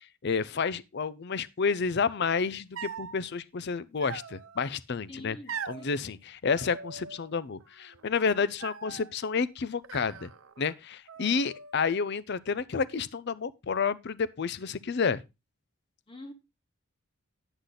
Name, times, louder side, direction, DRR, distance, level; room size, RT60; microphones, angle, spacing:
voice 1, 0.0-5.4 5.7-10.3 10.6-15.2, left 5 dB, 50° left, 0.5 m, -30 dB
sound 1, 2.8-3.2 4.0-4.7 5.5-5.9 6.5-7.3 7.6-8.2 8.6-9.1 9.8-10.8 11.1-11.8, right 6 dB, 75° right, 0.8 m, -41 dB
voice 2, 5.1-6.2 16.1-16.3, left 1 dB, 25° left, 1.0 m, -46 dB
9.9 x 8.1 x 3.9 m
head